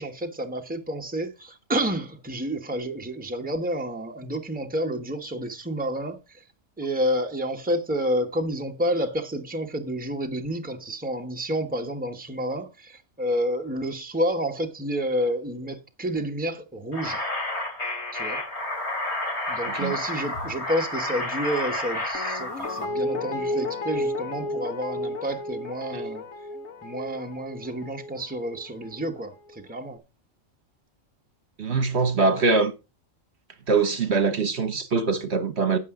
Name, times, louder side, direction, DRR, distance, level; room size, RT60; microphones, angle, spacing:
voice 1, 0.0-6.4 6.8-17.3 18.1-18.4 19.5-26.3 26.8-30.0, equal, 5° right, 1.2 m, -29 dB
sound 1, 16.9-22.9, left 2 dB, 55° left, 3.3 m, -30 dB
Guitar, 22.1-29.2 29.5-29.6, left 1 dB, 80° left, 1.6 m, -33 dB
voice 2, 31.6-32.7 33.7-35.8, right 4 dB, 60° right, 1.3 m, -23 dB
12.0 x 8.4 x 3.8 m
omnidirectional pair, 1.3 m